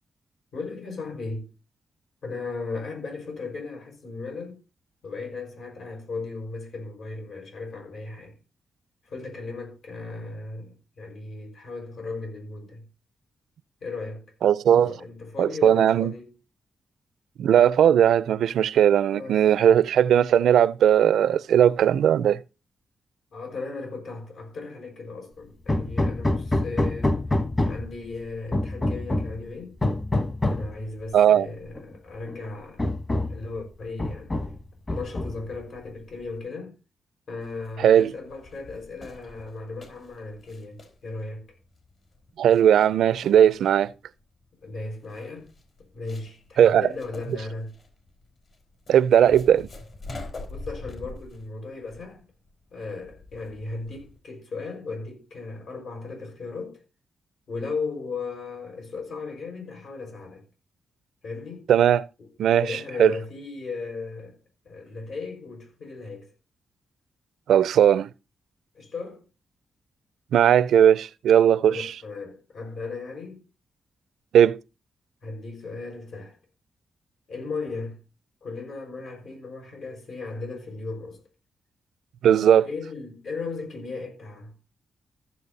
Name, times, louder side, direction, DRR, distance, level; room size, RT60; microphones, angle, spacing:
voice 1, 0.5-1.5 2.2-4.6 5.0-8.4 9.0-12.8 13.8-14.3 14.7-16.3 19.1-19.4 23.3-27.2 27.7-29.7 30.5-32.9 33.3-34.4 34.9-36.7 37.3-41.5 44.6-45.5 45.9-47.7 50.5-52.2 52.7-56.8 57.5-60.4 61.2-61.7 62.2-62.3 62.6-64.4 64.6-66.3 68.7-69.2 71.7-73.4 75.2-76.4 77.3-78.0 78.4-81.2 82.6-84.5, left 3 dB, 70° left, 5.6 m, -36 dB
voice 2, 14.4-14.9 15.4-16.1 17.4-22.4 31.1-31.5 37.8-38.1 42.4-43.9 46.6-46.9 48.9-49.7 61.7-62.1 62.4-63.1 67.5-68.1 70.3-71.9 74.3-74.6 82.2-82.7, right 9 dB, 90° right, 0.5 m, -18 dB
Hammer, 25.7-28.0 28.5-29.4 29.8-30.7 31.8-31.9 32.3-32.4 32.8-33.4 34.0-34.6 34.9-35.6, left 1 dB, 20° left, 1.3 m, -26 dB
sound 1, 37.4-54.2, left 2 dB, 50° left, 3.6 m, -45 dB
15.0 x 7.4 x 4.0 m
wide cardioid pair, 130°, 0 cm